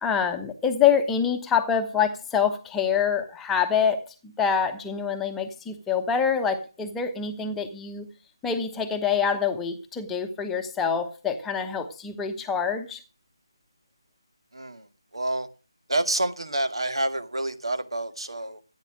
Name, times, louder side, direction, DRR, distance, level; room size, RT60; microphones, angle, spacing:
voice 1, 0.0-8.1 8.4-13.0, left 7 dB, 5° left, 1.0 m, -26 dB
voice 2, 14.5-14.9 15.1-15.5 15.9-18.6, right 1 dB, 80° right, 2.1 m, -28 dB
15.0 x 8.9 x 6.3 m
figure-of-eight pair, 165°, 3 cm